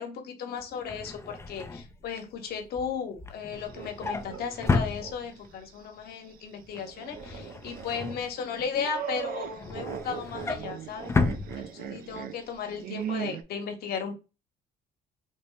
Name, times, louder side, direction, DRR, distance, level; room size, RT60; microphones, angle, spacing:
voice 1, 0.0-11.1 11.6-14.2, left 6 dB, 65° left, 5 dB, 1.1 m, -35 dB
Drawer open or close, 0.6-5.6 6.0-6.3 6.6-8.8 9.2-12.2 12.6-12.8 13.0-13.1, left 3 dB, 15° left, 0.4 m, -33 dB
sound 1, 3.5-5.1 5.6-5.7 6.7-13.4, right 9 dB, 60° right, 0.5 m, -39 dB
4.1 x 2.0 x 3.1 m, 0.29 s
cardioid pair, 110°, 17 cm